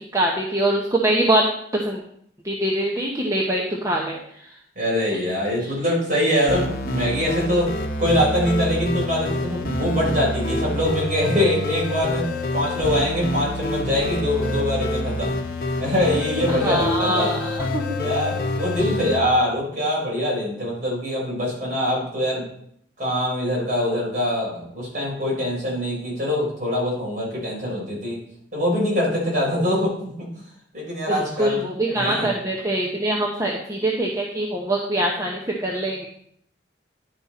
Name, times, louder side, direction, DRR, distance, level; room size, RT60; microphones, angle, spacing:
voice 1, 0.1-1.4 1.8-2.0 2.4-4.2 16.6-17.8 31.1-36.1, right 1 dB, 20° right, -2 dB, 0.9 m, -23 dB
voice 2, 4.8-7.7 8.0-15.4 15.8-17.3 18.0-22.4 23.0-28.2 28.5-30.4 30.7-31.7 31.9-32.3, left 1 dB, 45° right, -4 dB, 4.1 m, -23 dB
sound 1, 6.5-19.2, left 1 dB, 55° left, 0.9 m, -27 dB
11.0 x 5.4 x 4.2 m, 0.68 s
head